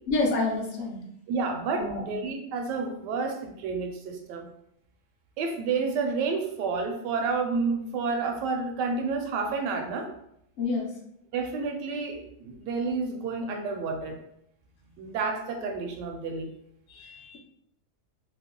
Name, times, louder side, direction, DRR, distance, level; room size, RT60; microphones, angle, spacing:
voice 1, 0.1-1.0 1.8-2.1 10.6-10.9 16.9-17.4, left 3 dB, 55° left, -1 dB, 0.7 m, -28 dB
voice 2, 1.3-4.5 5.4-10.1 11.3-14.2 15.0-16.5, right 4 dB, 80° right, 4 dB, 1.2 m, -30 dB
3.0 x 2.0 x 3.5 m, 0.76 s
omnidirectional pair, 1.9 m